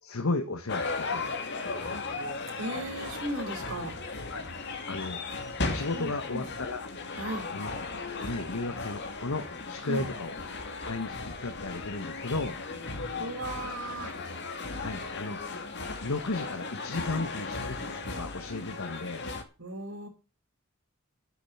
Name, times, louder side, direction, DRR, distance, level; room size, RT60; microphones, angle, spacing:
voice 1, 0.0-1.3 4.3-4.4 4.9-5.2 5.7-6.9 7.5-7.9 8.1-10.4 10.8-12.6 14.8-15.4 16.0-19.3, left 2 dB, 85° left, 9 dB, 1.3 m, -34 dB
sound 1, 0.7-19.4, left 3 dB, 55° left, 2.3 m, -36 dB
voice 2, 2.6-3.9 6.0-6.5 7.2-7.5 9.9-10.1 13.2-14.1 17.1-17.2 19.6-20.1, right 1 dB, 75° right, 2 dB, 4.8 m, -36 dB
9.3 x 7.4 x 8.5 m, 0.33 s
head